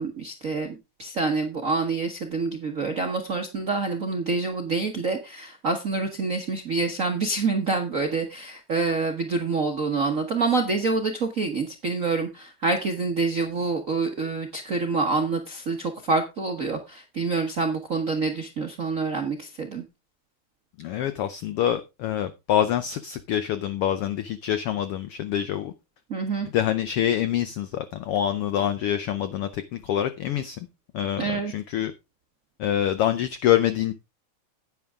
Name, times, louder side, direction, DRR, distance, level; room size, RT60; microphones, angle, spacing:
voice 1, 0.0-19.8 26.1-26.5 31.2-31.5, right 3 dB, 75° right, 0.7 m, -27 dB
voice 2, 20.8-25.7 26.4-30.6 30.9-31.9 32.6-33.9, left 11 dB, 80° left, 1.3 m, -26 dB
10.5 x 9.2 x 3.6 m
omnidirectional pair, 3.4 m